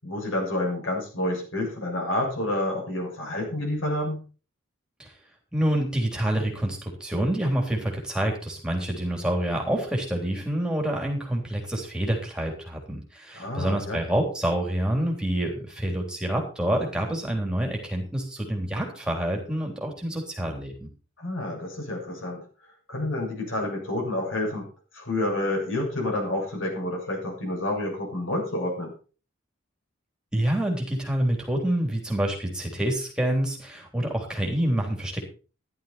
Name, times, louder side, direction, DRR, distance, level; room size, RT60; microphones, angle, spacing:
voice 1, 0.0-4.2 13.3-14.0 21.2-24.7 24.9-28.9, left 1 dB, 80° left, 1 dB, 6.9 m, -29 dB
voice 2, 5.5-20.9 30.3-35.2, right 1 dB, 5° right, 0 dB, 3.4 m, -27 dB
14.5 x 11.0 x 4.4 m, 0.36 s
head